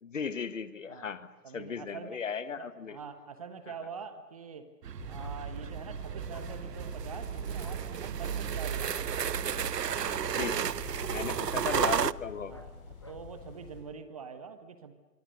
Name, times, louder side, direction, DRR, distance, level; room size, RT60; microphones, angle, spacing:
voice 1, 0.0-1.3 1.5-3.0 10.3-12.6, left 6 dB, 50° left, 13 dB, 1.5 m, -36 dB
voice 2, 1.4-2.2 2.6-4.7 5.1-9.0 11.0-11.5 12.5-14.9, right 6 dB, 20° right, 10 dB, 1.2 m, -45 dB
sound 1, 4.8-12.1, right 8 dB, 85° right, 0.8 m, -33 dB
sound 2, 5.0-13.8, left 4 dB, 35° left, 6.9 m, -46 dB
sound 3, 5.2-5.4 6.3-6.5 7.5-7.8 8.9-9.1 9.9-10.2 10.8-11.0 12.0-12.2 12.5-12.7 13.0-13.2, left 2 dB, 20° left, 0.7 m, -54 dB
26.0 x 24.0 x 6.6 m, 1.2 s
hypercardioid pair, 160°, 48 cm